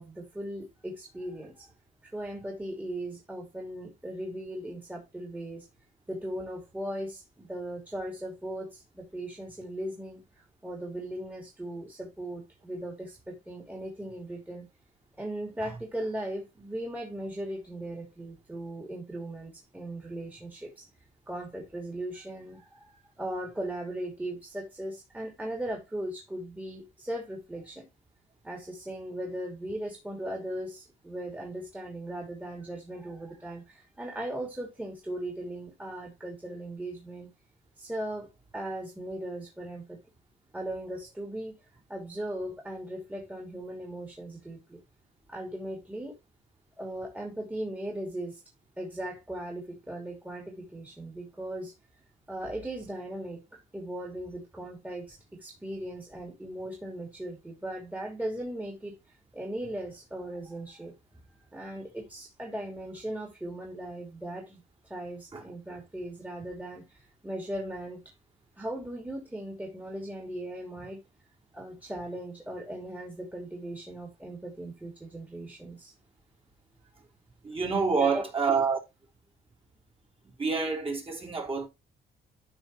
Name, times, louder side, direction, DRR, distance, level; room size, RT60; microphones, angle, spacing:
voice 1, 0.0-1.7 2.0-5.7 6.1-14.7 15.2-20.9 21.3-27.8 28.4-37.3 37.8-40.0 40.5-41.6 41.9-44.8 45.3-46.2 46.8-48.4 48.8-51.7 52.3-61.0 61.5-68.1 68.6-71.0 71.5-75.9 77.9-78.2, right 1 dB, 10° right, 2.6 m, -38 dB
voice 2, 77.4-78.8 80.4-81.7, right 5 dB, 25° right, 3.4 m, -27 dB
12.5 x 4.6 x 3.0 m
cardioid pair, 90°, 20 cm